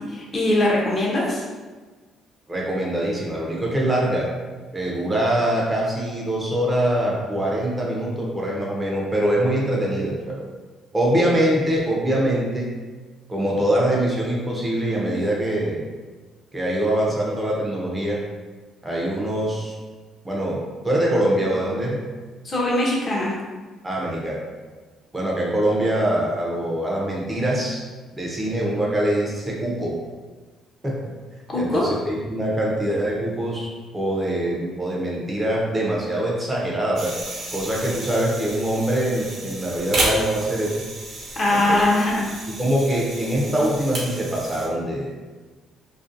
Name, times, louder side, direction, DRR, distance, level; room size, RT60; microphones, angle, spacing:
voice 1, 0.0-1.4 22.4-23.3 31.5-31.9 41.4-42.2, left 1 dB, 35° left, -4 dB, 0.6 m, -21 dB
voice 2, 2.5-4.3 4.7-10.4 10.9-12.7 13.3-15.8 16.5-18.2 18.8-19.7 20.2-22.0 23.8-24.4 25.1-27.8 28.1-29.9 30.8-31.0 31.5-33.7 33.9-37.1 37.5-40.8 41.5-41.8 42.6-45.1, right 1 dB, 15° right, -4 dB, 0.5 m, -23 dB
sound 1, 37.0-44.7, right 2 dB, 55° right, 0.6 m, -32 dB
2.5 x 2.1 x 2.5 m, 1.3 s
cardioid pair, 120°, 0 cm